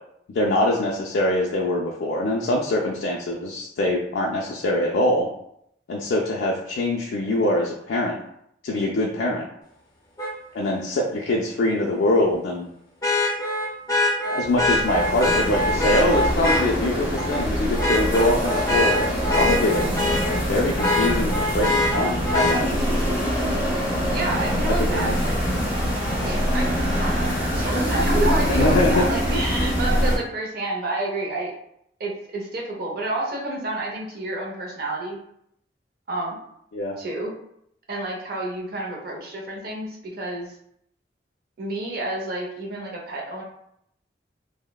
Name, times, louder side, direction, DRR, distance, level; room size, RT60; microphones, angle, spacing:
voice 1, 0.3-5.3 5.9-8.1 8.6-9.4 10.5-12.7 14.2-19.1 19.3-19.8 20.5-22.8 24.8-25.2 28.5-29.0 36.7-37.0, left 1 dB, 75° left, -3 dB, 0.3 m, -23 dB
Vehicle horn car horn honking, 10.2-10.3 13.0-16.6 17.2-17.4 17.8-20.4 20.8-22.6 24.4-24.5, left 2 dB, 20° left, 0.5 m, -23 dB
sound 1, 14.4-30.2, equal, 10° right, 0.8 m, -24 dB
voice 2, 24.1-25.4 26.2-26.8 27.0-31.5 32.0-35.2 36.1-36.4 37.0-37.3 37.9-40.5 41.6-43.4, right 2 dB, 55° right, -1 dB, 0.6 m, -29 dB
2.9 x 2.0 x 2.2 m, 0.74 s
head